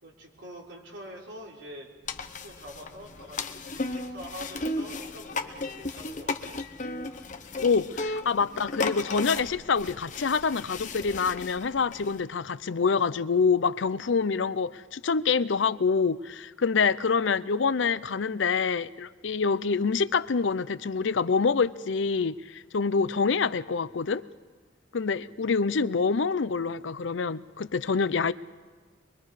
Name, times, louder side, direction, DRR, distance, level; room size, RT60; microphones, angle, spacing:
voice 1, 0.0-1.9 2.2-6.6, equal, 75° right, 4.1 m, -45 dB
sound 1, 2.1-12.2, left 3 dB, 40° left, 1.0 m, -35 dB
voice 2, 7.6-24.2 24.9-28.3, left 5 dB, 75° left, 0.6 m, -26 dB
24.0 x 23.5 x 4.9 m
head